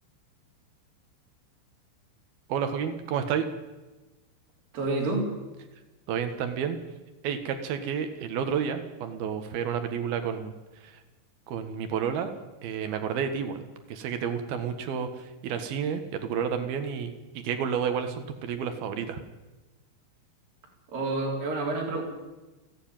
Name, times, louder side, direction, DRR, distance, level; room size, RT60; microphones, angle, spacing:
voice 1, 2.5-3.5 6.1-6.8 7.2-10.5 10.8-10.9 11.5-12.3 12.6-19.2, right 7 dB, 60° right, 8 dB, 2.9 m, -30 dB
voice 2, 4.7-5.3 20.9-22.0, right 2 dB, 45° right, -1 dB, 5.6 m, -28 dB
29.0 x 10.0 x 9.0 m, 1.1 s
omnidirectional pair, 5.6 m